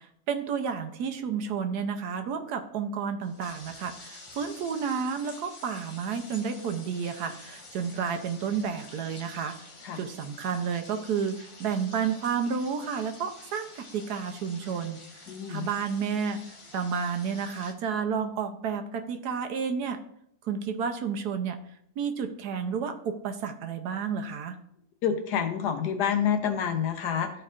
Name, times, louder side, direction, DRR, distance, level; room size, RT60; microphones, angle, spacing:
voice 1, 0.0-9.6 10.0-15.0 15.5-20.0 20.4-21.6 22.0-24.6, right 6 dB, 75° right, 6 dB, 1.3 m, -31 dB
sound 1, 3.2-17.7, left 2 dB, 35° left, 0.5 m, -49 dB
voice 2, 15.3-15.7 25.0-27.3, left 8 dB, 80° left, 6 dB, 1.4 m, -28 dB
13.0 x 4.5 x 2.5 m, 0.70 s
omnidirectional pair, 1.7 m